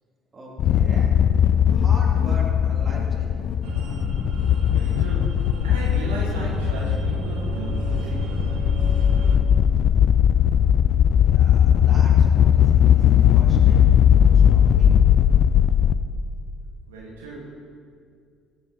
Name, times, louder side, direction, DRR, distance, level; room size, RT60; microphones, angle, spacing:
voice 1, 0.3-3.6 10.8-15.6 16.1-16.2, right 1 dB, 35° right, -3 dB, 3.0 m, -41 dB
sound 1, 0.6-16.0, left 9 dB, 60° left, 0.4 m, -18 dB
sound 2, 3.6-9.4, right 4 dB, 65° right, 1.6 m, -32 dB
voice 2, 4.7-8.4 16.9-17.5, right 2 dB, 85° right, -5 dB, 2.3 m, -36 dB
14.0 x 7.6 x 4.3 m, 2.3 s
hypercardioid pair, 60°, 0 cm